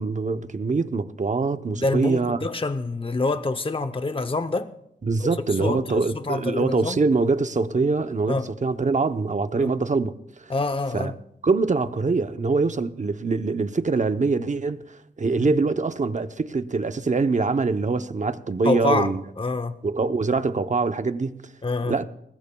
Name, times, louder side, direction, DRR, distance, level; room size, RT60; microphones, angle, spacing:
voice 1, 0.0-2.5 5.0-10.1 10.4-10.5 10.9-11.1 11.4-19.2 19.8-21.4 21.9-22.1, right 4 dB, 40° right, 0.7 m, -24 dB
voice 2, 1.7-4.7 5.2-5.3 5.6-7.0 8.3-8.5 9.5-9.7 10.5-11.1 15.4-15.5 18.6-19.1 19.4-19.8 21.6-22.0, left 3 dB, 30° left, 0.7 m, -26 dB
23.0 x 19.5 x 2.3 m
wide cardioid pair, 90°, 19 cm